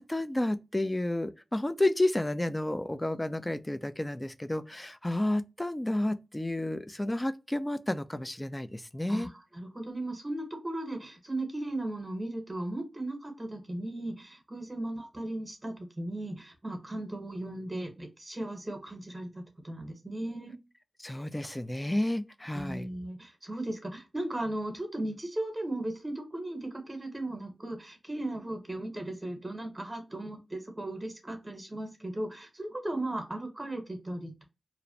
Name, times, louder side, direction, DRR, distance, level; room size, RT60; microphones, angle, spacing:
voice 1, 0.0-9.3 21.0-22.9, left 1 dB, 20° left, 0.3 m, -31 dB
voice 2, 9.1-20.5 22.5-34.4, right 1 dB, 30° right, 0.8 m, -37 dB
2.5 x 2.0 x 2.6 m
cardioid pair, 50°, 0 cm